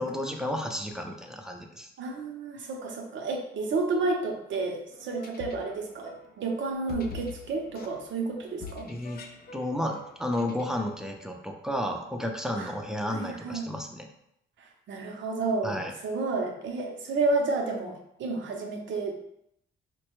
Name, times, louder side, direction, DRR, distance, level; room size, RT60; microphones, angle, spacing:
voice 1, 0.0-1.9 8.8-9.2 9.5-14.1 15.6-15.9, left 1 dB, 5° right, 3 dB, 0.5 m, -32 dB
voice 2, 2.0-8.9 12.6-12.7 13.1-13.7 14.9-19.1, right 3 dB, 70° right, 2 dB, 0.7 m, -31 dB
sound 1, 4.9-11.0, left 5 dB, 50° left, 0.5 m, -45 dB
4.0 x 2.2 x 3.0 m, 0.77 s
cardioid pair, 90°, 20 cm